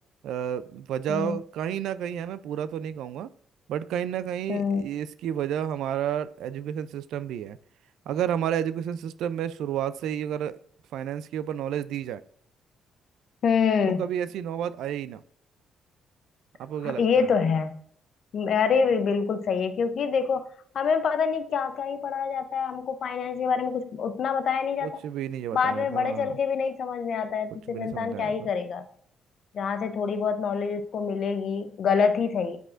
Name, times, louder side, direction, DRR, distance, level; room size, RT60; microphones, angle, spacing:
voice 1, 0.2-3.3 3.7-7.6 8.1-10.6 10.9-12.2 13.9-15.2 16.6-17.3 24.8-26.4 27.7-28.5, right 9 dB, 85° right, 14 dB, 0.3 m, -31 dB
voice 2, 4.5-4.8 13.4-14.0 16.8-17.8 18.3-20.5 20.7-25.0 25.5-28.8 29.5-32.6, left 6 dB, 60° left, 10 dB, 0.6 m, -26 dB
7.9 x 4.9 x 2.5 m, 0.63 s
cardioid pair, 90°, 0 cm